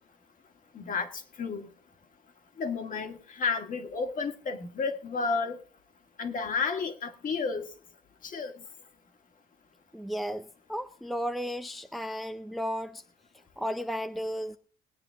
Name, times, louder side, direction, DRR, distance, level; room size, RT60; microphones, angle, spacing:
voice 1, 0.7-1.7 2.6-5.6 6.2-7.7 8.2-8.6, left 5 dB, 40° left, 1.8 m, -32 dB
voice 2, 9.9-13.0 13.6-14.6, equal, ahead, 0.5 m, -34 dB
21.5 x 8.9 x 3.5 m
cardioid pair, 125°, 21 cm